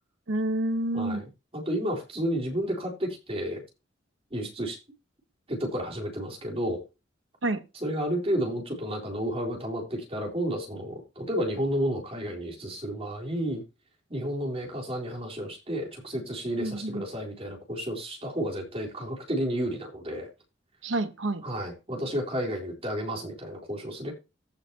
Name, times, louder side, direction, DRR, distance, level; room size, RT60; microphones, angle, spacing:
voice 1, 0.3-1.2 7.4-7.6 16.6-17.0 20.8-21.4, right 2 dB, 85° right, 1.1 m, -28 dB
voice 2, 0.9-3.6 4.3-4.8 5.5-6.8 7.8-13.6 14.1-20.3 21.4-24.1, equal, 30° right, 3.8 m, -31 dB
15.0 x 6.6 x 2.9 m
head